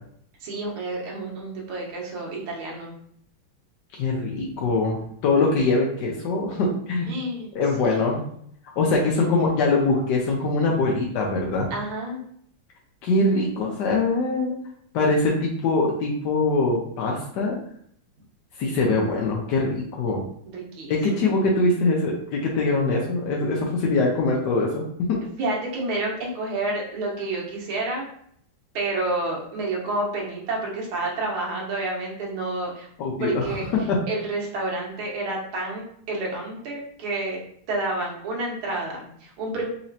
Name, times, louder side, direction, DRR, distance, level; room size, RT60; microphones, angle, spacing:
voice 1, 0.4-2.9 7.1-7.5 7.9-8.0 11.7-12.2 20.5-21.3 25.4-28.1 28.7-32.9 33.2-33.7 34.1-37.4 37.7-39.7, right 2 dB, 75° right, -2 dB, 1.8 m, -29 dB
voice 2, 4.0-7.1 7.5-8.2 8.8-11.7 13.0-14.5 14.9-17.6 18.6-20.2 20.9-25.2 33.0-33.6 33.9-34.0, left 3 dB, 70° left, -2 dB, 1.1 m, -23 dB
4.1 x 2.9 x 2.7 m, 0.66 s
omnidirectional pair, 2.4 m